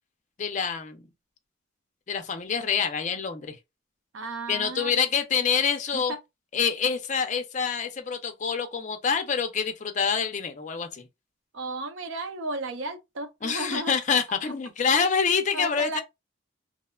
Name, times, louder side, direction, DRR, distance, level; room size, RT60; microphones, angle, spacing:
voice 1, 0.4-1.0 2.1-3.6 4.5-6.1 6.5-11.1 13.4-16.0, left 6 dB, 35° left, 0.4 m, -26 dB
voice 2, 4.1-5.0 5.9-6.2 11.5-13.9 15.5-16.0, right 2 dB, 70° right, 0.5 m, -34 dB
2.9 x 2.1 x 2.2 m
head